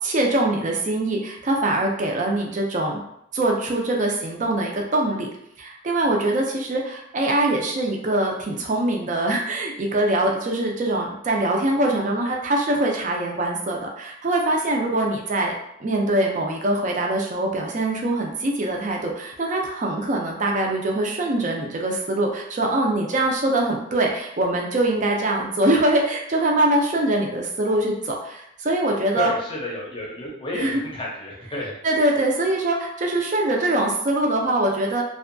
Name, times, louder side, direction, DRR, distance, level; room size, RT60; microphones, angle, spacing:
voice 1, 0.0-3.0 3.3-5.3 5.6-29.3 30.5-30.8 31.8-35.0, right 1 dB, 40° right, 0 dB, 0.4 m, -23 dB
voice 2, 29.2-31.7, left 2 dB, 25° left, -3 dB, 0.6 m, -31 dB
2.6 x 2.2 x 2.5 m, 0.77 s
head